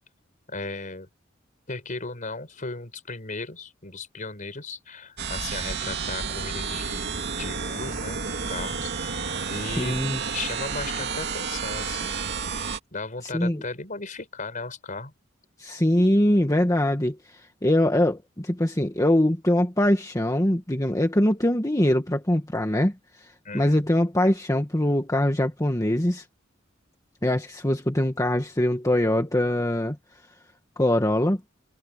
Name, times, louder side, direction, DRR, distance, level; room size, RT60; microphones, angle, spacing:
voice 1, 0.5-1.1 1.7-8.2 8.5-10.0 10.3-12.2 12.9-15.1 23.4-23.8, left 3 dB, 40° left, 4.7 m, -36 dB
sound 1, 5.2-12.8, right 5 dB, 60° right, 2.5 m, -31 dB
voice 2, 9.8-10.2 13.2-13.6 15.6-22.9 23.2-26.2 27.2-30.0 30.8-31.4, left 1 dB, 15° left, 1.6 m, -23 dB
head